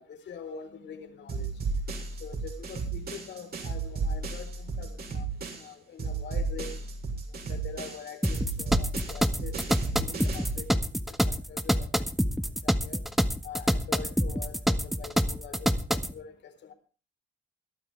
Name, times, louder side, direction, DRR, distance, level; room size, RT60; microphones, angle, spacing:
voice 1, 0.0-1.5 2.2-5.3 5.6-6.7 7.5-10.7 11.3-11.9 12.6-13.0 13.4-16.7, left 6 dB, 65° left, 8 dB, 4.2 m, -44 dB
sound 1, 1.3-5.7 6.0-10.6, right 4 dB, 50° right, 6.7 m, -34 dB
sound 2, 8.2-16.1, equal, ahead, 1.5 m, -27 dB
22.5 x 11.5 x 3.4 m, 0.36 s
cardioid pair, 90°, 20 cm